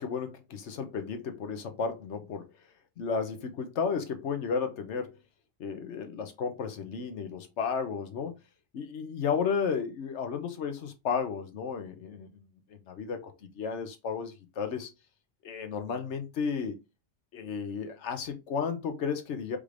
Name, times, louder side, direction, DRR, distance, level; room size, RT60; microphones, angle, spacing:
voice 1, 0.0-2.5 3.0-5.2 5.6-8.3 8.7-12.3 12.7-14.9 15.4-16.8 17.3-19.6, left 6 dB, 80° left, 1.1 m, -33 dB
5.1 x 3.2 x 2.5 m
omnidirectional pair, 1.2 m